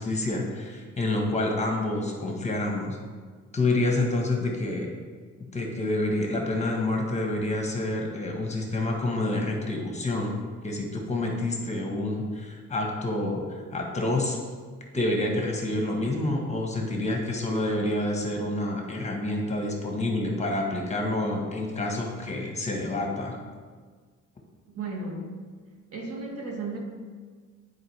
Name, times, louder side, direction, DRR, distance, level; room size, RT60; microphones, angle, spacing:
voice 1, 0.0-3.0 3.5-4.9 5.5-10.3 10.6-14.4 14.9-23.4, left 2 dB, 20° left, 1 dB, 1.3 m, -28 dB
voice 2, 24.7-25.2 25.9-26.8, right 3 dB, 50° right, 0 dB, 1.4 m, -34 dB
9.0 x 4.6 x 3.3 m, 1.5 s
cardioid pair, 90°, 30 cm